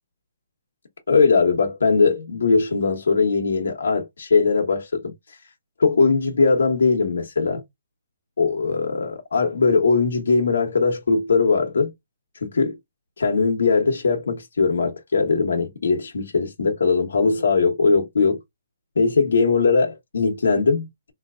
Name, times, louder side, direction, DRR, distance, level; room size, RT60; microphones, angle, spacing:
voice 1, 1.1-5.1 5.8-7.6 8.4-11.9 12.5-12.8 13.2-18.4 19.0-21.1, left 4 dB, 85° left, 1.0 m, -20 dB
3.3 x 2.8 x 2.3 m
hypercardioid pair, 165°, 0 cm